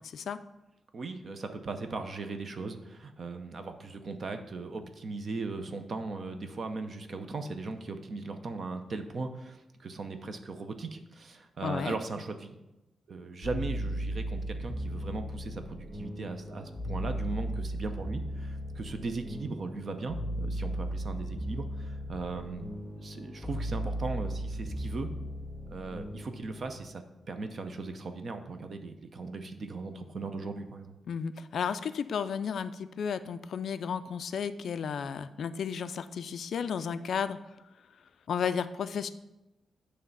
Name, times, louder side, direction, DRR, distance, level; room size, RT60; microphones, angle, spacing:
voice 1, 0.9-12.6 13.1-25.1 25.7-27.0 27.3-30.9, right 3 dB, 40° right, 7 dB, 0.6 m, -38 dB
voice 2, 11.6-12.0 31.1-37.4 38.3-39.1, left 7 dB, 60° left, 12 dB, 0.3 m, -33 dB
sound 1, 13.4-26.8, right 1 dB, 20° right, 1.7 m, -36 dB
9.5 x 3.3 x 5.4 m, 0.96 s
wide cardioid pair, 160°, 0 cm